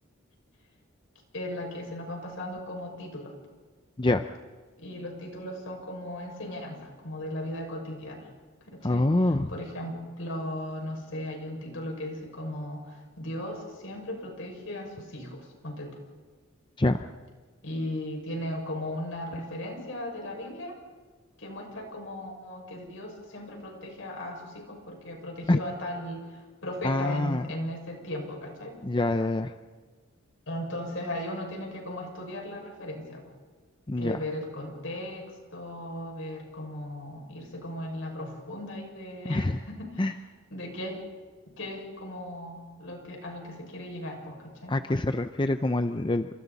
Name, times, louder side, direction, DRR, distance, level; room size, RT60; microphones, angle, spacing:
voice 1, 1.3-3.3 4.8-8.3 8.6-15.9 17.6-20.8 21.4-28.7 30.5-33.2 34.0-40.2 40.5-41.0 41.6-44.7, left 1 dB, 70° left, 2 dB, 6.1 m, -37 dB
voice 2, 8.8-9.5 16.8-17.0 25.5-25.6 26.8-27.5 28.8-29.5 33.9-34.2 39.3-39.6 40.0-40.1 44.7-46.3, left 2 dB, 25° left, 9 dB, 0.6 m, -25 dB
30.0 x 26.5 x 4.2 m, 1.4 s
head